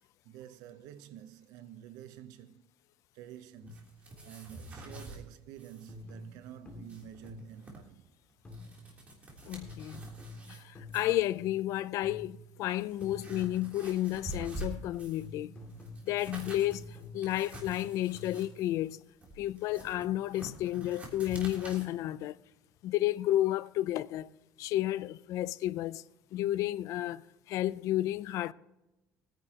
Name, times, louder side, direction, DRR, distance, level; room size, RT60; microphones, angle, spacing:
voice 1, 0.2-2.7 3.1-3.9 4.2-8.0, right 11 dB, 80° right, 0.8 m, -49 dB
sound 1, 3.6-4.0 4.9-5.3 5.9-7.7 8.4-8.9 9.6-11.7 12.0-12.5 13.0-13.8 14.6-18.6, left 1 dB, 20° left, 2.4 m, -48 dB
sound 2, 3.7-5.2 5.6-5.9 6.2-6.3 6.7-7.8 8.3-10.6 10.9-11.3 12.0-12.1 12.6-15.3 15.7-21.9, right 2 dB, 20° right, 3.3 m, -47 dB
voice 2, 9.5-10.0 10.5-15.5 16.1-16.8 17.1-19.0 19.4-22.4 22.8-24.3 24.6-26.0 26.3-27.2 27.5-28.5, left 14 dB, 60° left, 0.5 m, -32 dB
22.0 x 10.0 x 2.9 m
cardioid pair, 150°, 6 cm